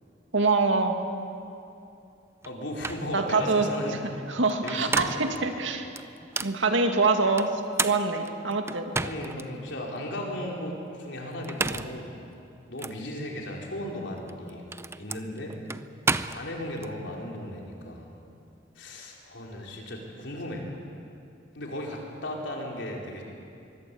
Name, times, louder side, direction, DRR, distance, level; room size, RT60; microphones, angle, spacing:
voice 1, 0.3-0.9 3.1-3.7 4.3-5.9 6.4-7.5 7.8-8.9, right 3 dB, 85° right, 4 dB, 2.3 m, -24 dB
voice 2, 2.4-4.0 4.6-5.3 9.0-12.2 12.7-14.6 14.9-15.6 16.3-18.1 18.7-20.7 21.5-23.2, left 1 dB, 70° left, -1 dB, 4.6 m, -36 dB
sound 1, 2.4-2.5 2.8-3.1 4.5-5.4 6.0-6.6 7.4-9.4 10.0-10.1 11.3-12.0 12.8-13.0 14.2-16.9, right 3 dB, 15° right, 0.6 m, -32 dB
23.0 x 23.0 x 8.6 m, 2.6 s
head